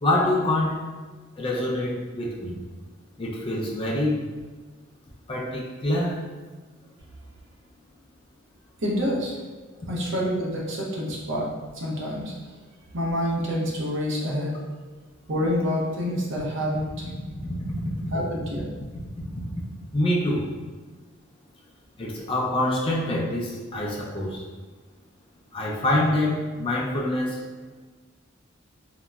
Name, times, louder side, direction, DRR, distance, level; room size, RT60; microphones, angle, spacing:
voice 1, 0.0-0.8 1.4-2.6 3.2-4.3 5.3-6.2 17.4-17.6 19.6-19.7 19.9-20.5 22.0-24.4 25.5-27.4, left 1 dB, 25° left, -2 dB, 0.4 m, -25 dB
voice 2, 8.8-9.4 9.9-11.5 11.7-12.3 12.9-14.6 15.3-17.0 18.1-18.7, equal, 60° right, -3 dB, 0.6 m, -27 dB
3.6 x 2.0 x 2.2 m, 1.4 s
head